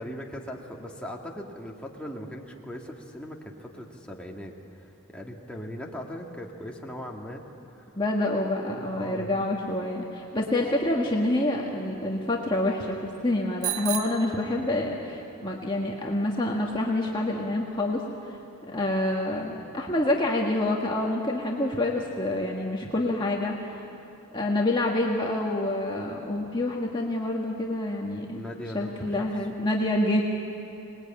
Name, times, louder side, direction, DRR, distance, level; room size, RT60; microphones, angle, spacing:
voice 1, 0.0-7.4 7.7-7.8 8.7-9.4 28.3-29.3, equal, 5° left, -1 dB, 1.9 m, -39 dB
voice 2, 8.0-18.0 18.7-23.8 24.3-28.4 28.7-30.2, left 1 dB, 20° left, -2 dB, 1.6 m, -27 dB
Bicycle bell, 13.6-15.2, right 13 dB, 70° right, 1.0 m, -34 dB
26.5 x 20.0 x 8.9 m, 3.0 s
head